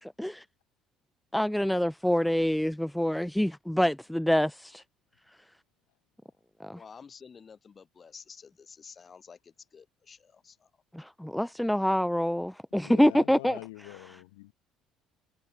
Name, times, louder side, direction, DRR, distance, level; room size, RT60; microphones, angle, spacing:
voice 1, 0.0-0.4 1.3-4.8 6.6-6.8 10.9-13.6, equal, 5° left, 0.4 m, -26 dB
voice 2, 6.7-10.7, left 6 dB, 40° left, 6.2 m, -51 dB
voice 3, 12.8-14.5, left 22 dB, 80° left, 0.4 m, -44 dB
hypercardioid pair, 55°, 0 cm